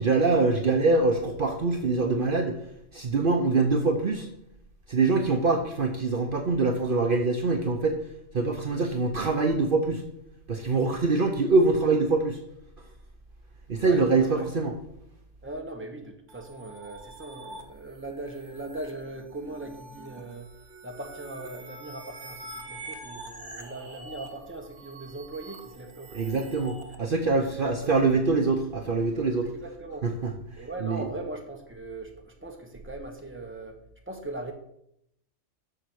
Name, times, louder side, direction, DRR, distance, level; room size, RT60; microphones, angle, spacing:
voice 1, 0.0-2.6 2.9-4.3 4.9-8.0 8.3-10.0 10.5-12.4 13.7-14.7 26.1-29.5 30.0-31.1, right 3 dB, 50° right, 4 dB, 0.9 m, -24 dB
voice 2, 13.8-14.6 15.4-20.5 20.8-26.2 27.4-27.9 29.4-30.1 30.6-33.8 34.1-34.5, right 2 dB, 10° right, 2 dB, 1.3 m, -40 dB
sound 1, 16.3-27.0, right 2 dB, 75° right, 1.3 m, -45 dB
7.5 x 6.4 x 6.3 m, 0.77 s
omnidirectional pair, 1.2 m